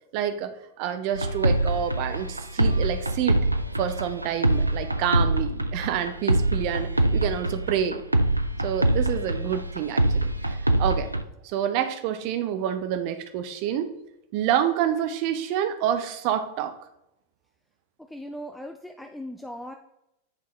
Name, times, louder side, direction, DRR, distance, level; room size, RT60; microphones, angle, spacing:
voice 1, 0.1-0.5 0.8-3.4 3.8-8.0 8.6-11.1 11.4-13.9 14.3-16.7, right 10 dB, 45° right, 9 dB, 0.6 m, -28 dB
sound 1, 1.1-11.2, right 1 dB, 85° right, 0.4 m, -24 dB
voice 2, 18.0-19.7, equal, 5° left, 4 dB, 0.4 m, -39 dB
9.7 x 3.6 x 3.1 m, 0.84 s
figure-of-eight pair, 90°, 0 cm